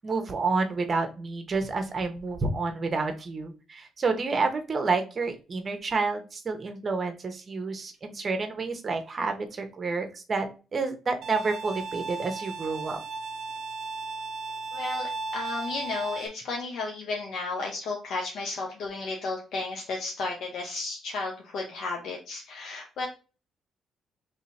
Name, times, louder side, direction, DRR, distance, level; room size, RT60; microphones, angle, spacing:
voice 1, 0.0-13.0, right 4 dB, 40° right, 6 dB, 0.9 m, -29 dB
Bowed string instrument, 11.2-16.3, right 3 dB, 70° right, 0.4 m, -35 dB
voice 2, 14.7-23.1, left 3 dB, 75° left, 0 dB, 0.7 m, -33 dB
3.2 x 2.8 x 4.2 m, 0.33 s
cardioid pair, 90°, 0 cm